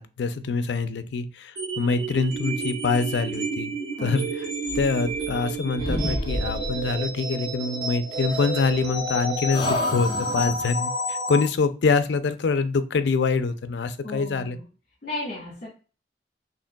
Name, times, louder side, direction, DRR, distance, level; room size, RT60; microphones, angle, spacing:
voice 1, 0.0-3.7 4.0-4.5 4.7-14.6, left 4 dB, 90° left, 11 dB, 0.4 m, -25 dB
sound 1, 1.6-11.5, right 1 dB, 65° right, 1.3 m, -30 dB
sound 2, 4.6-5.5 5.8-6.9 8.3-9.1 9.5-10.8, left 1 dB, 25° left, 0.6 m, -31 dB
voice 2, 14.0-14.6 15.0-15.7, left 2 dB, 50° left, -5 dB, 1.5 m, -34 dB
5.0 x 3.2 x 2.2 m, 0.35 s
head